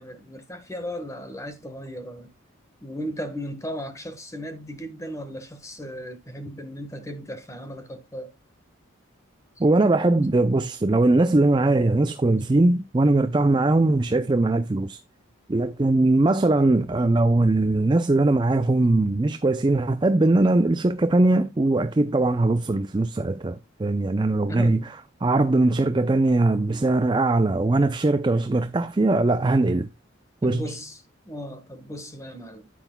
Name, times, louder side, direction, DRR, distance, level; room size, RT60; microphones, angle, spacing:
voice 1, 0.0-2.3 2.8-8.3 9.6-9.7 24.5-24.9 30.4-32.7, equal, 15° left, 1.4 m, -36 dB
voice 2, 9.6-15.0 15.5-24.8 25.2-29.9 30.4-30.6, right 2 dB, 20° right, 0.4 m, -20 dB
10.0 x 9.0 x 2.2 m
head